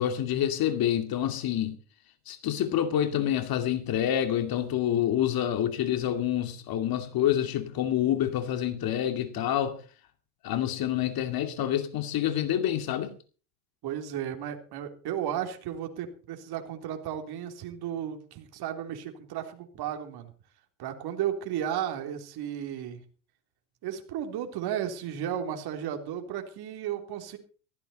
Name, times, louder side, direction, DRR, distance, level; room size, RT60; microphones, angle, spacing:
voice 1, 0.0-1.8 2.3-9.8 10.4-13.1, left 11 dB, 50° left, 2.5 m, -27 dB
voice 2, 13.8-20.3 20.8-23.0 23.8-27.4, right 10 dB, 50° right, 3.5 m, -34 dB
16.0 x 15.0 x 4.2 m
supercardioid pair, 100°, 48 cm